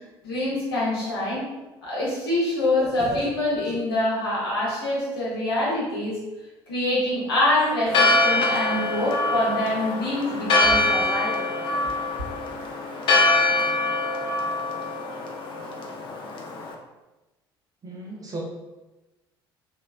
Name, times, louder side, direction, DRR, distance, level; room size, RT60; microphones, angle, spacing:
voice 1, 0.2-1.4 1.8-6.2 6.7-11.4, left 1 dB, 70° left, -6 dB, 1.0 m, -25 dB
Church bell, 7.9-16.7, left 2 dB, 40° left, 0.4 m, -24 dB
voice 2, 17.8-18.4, right 2 dB, 30° right, -2 dB, 0.4 m, -35 dB
3.0 x 2.1 x 2.4 m, 1.1 s
figure-of-eight pair, 55°, 13 cm